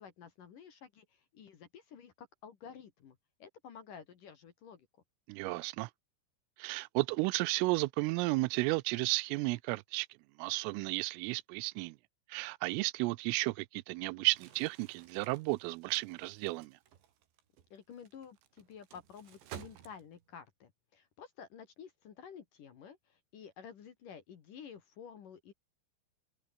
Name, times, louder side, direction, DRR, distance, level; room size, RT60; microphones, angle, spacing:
voice 1, 0.0-4.9 17.7-25.5, left 7 dB, 55° left, 2.9 m, -52 dB
voice 2, 5.3-5.9 6.6-10.1 10.4-12.0 12.3-16.8, right 23 dB, 85° right, 3.2 m, -33 dB
Crumpling crinkling, 14.2-20.4, right 10 dB, 65° right, 4.6 m, -54 dB
open air
omnidirectional pair, 5.8 m